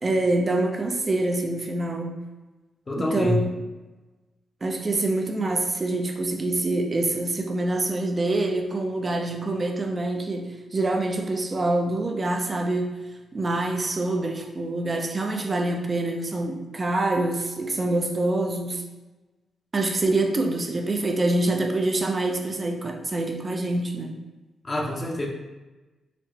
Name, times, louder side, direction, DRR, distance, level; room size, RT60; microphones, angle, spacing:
voice 1, 0.0-2.2 2.9-3.4 4.6-12.9 13.3-18.8 19.7-24.1, right 2 dB, 40° right, 3 dB, 0.5 m, -25 dB
voice 2, 2.9-3.4 24.6-25.3, left 2 dB, 35° left, -1 dB, 0.7 m, -26 dB
4.1 x 2.1 x 2.9 m, 1.2 s
supercardioid pair, 50°, 0 cm